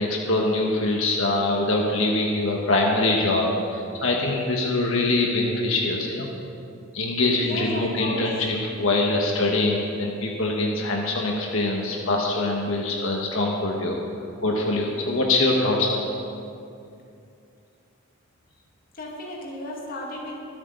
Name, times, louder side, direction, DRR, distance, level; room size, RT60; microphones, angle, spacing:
voice 1, 0.0-6.3 6.9-14.0 14.4-16.1, left 2 dB, 75° left, -1 dB, 1.4 m, -23 dB
voice 2, 7.4-8.5 18.9-20.4, left 1 dB, 45° left, -2 dB, 2.1 m, -34 dB
24.0 x 8.8 x 3.9 m, 2.5 s
head